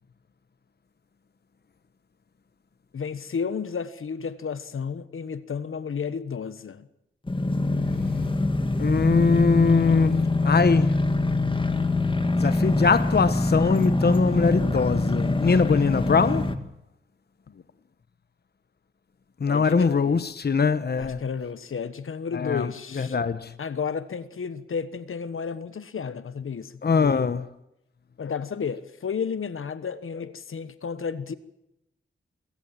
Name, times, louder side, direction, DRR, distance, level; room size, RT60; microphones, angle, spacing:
voice 1, 2.9-6.9 17.5-17.6 19.5-20.1 21.0-23.2 23.6-27.3 28.2-31.3, left 6 dB, 75° left, 1.3 m, -32 dB
sound 1, 7.3-16.6, left 2 dB, 25° left, 1.8 m, -24 dB
voice 2, 8.8-10.9 12.4-16.5 19.4-21.2 22.3-22.7 22.9-23.5 26.8-27.4, left 5 dB, 50° left, 1.0 m, -22 dB
22.0 x 17.0 x 7.6 m
wide cardioid pair, 90°, 21 cm